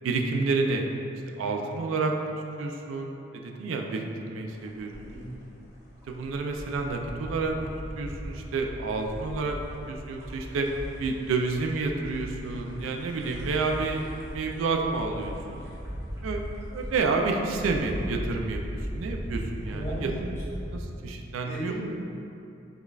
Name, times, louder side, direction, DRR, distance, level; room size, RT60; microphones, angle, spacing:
voice 1, 0.0-0.9 1.3-2.3 2.6-5.2 6.1-9.6 9.9-10.7 11.0-15.6 16.2-16.4 16.7-18.6 18.9-20.1 20.7-21.7, right 3 dB, 90° right, 2 dB, 0.3 m, -29 dB
sound 1, 4.5-20.8, equal, 15° right, 0.5 m, -38 dB
voice 2, 19.7-20.1 21.4-21.7, right 1 dB, 15° left, -9 dB, 0.8 m, -36 dB
5.0 x 2.3 x 2.3 m, 2.8 s
head